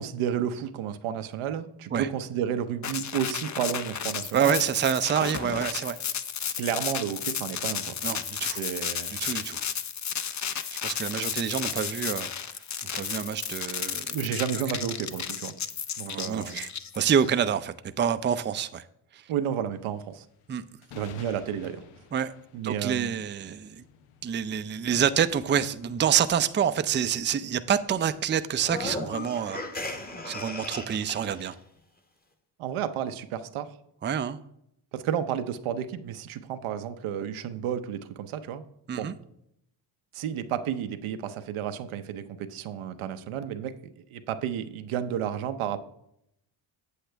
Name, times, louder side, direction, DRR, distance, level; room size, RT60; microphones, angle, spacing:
voice 1, 0.0-4.5 6.6-8.0 8.5-9.2 14.1-15.5 16.0-16.6 19.3-20.2 20.9-21.8 22.5-23.1 32.6-33.7 34.9-38.6 38.9-39.1 40.1-45.8, right 9 dB, 80° right, 0.8 m, -31 dB
sound 1, 2.8-17.3, left 8 dB, 35° left, 0.6 m, -33 dB
voice 2, 4.3-6.0 8.0-8.6 9.1-9.6 10.8-12.3 12.9-14.2 16.1-18.8 19.1-19.2 20.5-20.6 22.1-22.3 22.6-23.8 24.2-29.6 30.3-31.5 34.0-34.4 38.9-39.1, right 8 dB, 25° right, 0.4 m, -27 dB
sound 2, 19.7-28.2, left 7 dB, 85° left, 0.8 m, -53 dB
sound 3, 28.6-31.5, left 2 dB, 20° left, 1.1 m, -36 dB
8.2 x 7.7 x 3.4 m
supercardioid pair, 60°, 49 cm